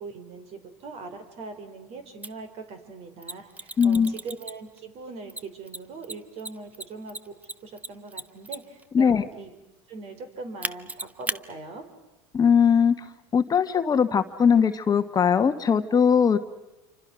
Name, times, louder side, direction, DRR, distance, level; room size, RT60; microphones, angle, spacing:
voice 1, 0.0-7.3 7.6-9.5 9.9-11.8, right 4 dB, 50° right, 8 dB, 4.5 m, -41 dB
Mechanisms, 2.2-2.3 3.2-4.8 5.3-8.8 10.6-11.4, right 2 dB, 10° right, 0.8 m, -34 dB
voice 2, 3.8-4.1 8.9-9.2 12.3-12.9 13.3-16.4, left 7 dB, 30° left, 8 dB, 1.3 m, -20 dB
28.0 x 25.0 x 6.2 m, 1.0 s
supercardioid pair, 100°, 14 cm